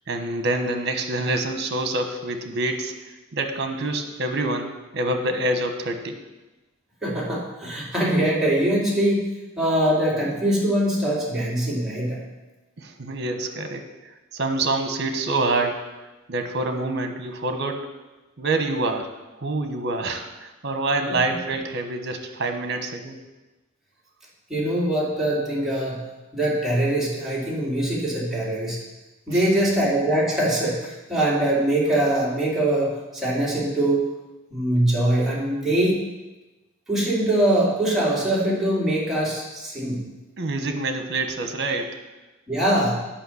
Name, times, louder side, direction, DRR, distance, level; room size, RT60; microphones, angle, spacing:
voice 1, 0.1-6.2 12.8-13.8 14.3-15.8 16.3-17.9 18.4-19.1 19.4-23.2 29.3-29.5 40.4-41.9, right 2 dB, 55° right, 6 dB, 1.2 m, -26 dB
voice 2, 7.0-9.3 9.6-12.2 21.1-21.2 24.5-26.0 26.3-28.8 29.3-34.0 34.5-36.0 36.9-40.0 42.5-43.0, right 1 dB, ahead, -7 dB, 2.6 m, -22 dB
8.9 x 5.7 x 7.0 m, 1.1 s
head